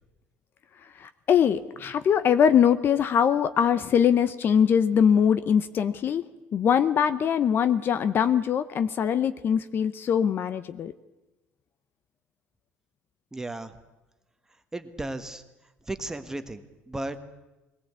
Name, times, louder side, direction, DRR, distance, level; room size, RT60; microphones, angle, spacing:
voice 1, 1.0-6.2 6.5-10.9, left 8 dB, 40° left, 12 dB, 0.8 m, -22 dB
voice 2, 13.3-13.8 14.7-15.4 15.9-17.2, right 2 dB, 10° right, 9 dB, 1.5 m, -35 dB
22.0 x 17.0 x 8.3 m, 1.1 s
cardioid pair, 120°, 5 cm